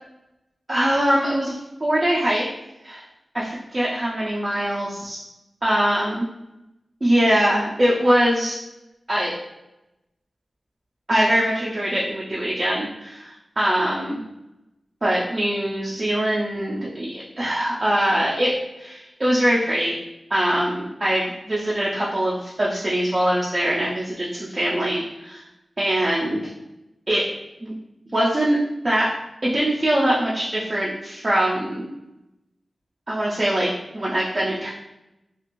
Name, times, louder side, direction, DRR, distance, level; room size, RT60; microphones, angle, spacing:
voice 1, 0.7-2.5 2.8-3.0 3.3-5.2 5.6-6.2 7.0-8.6 9.1-9.3 11.1-14.2 15.0-18.5 18.8-20.0 20.3-25.4 25.8-26.4 27.1-27.2 27.6-27.7 28.1-28.6 28.8-29.1 29.4-31.9 33.1-34.7, right 1 dB, 35° right, -6 dB, 0.5 m, -22 dB
2.5 x 2.4 x 3.0 m, 0.92 s
wide cardioid pair, 100°, 0 cm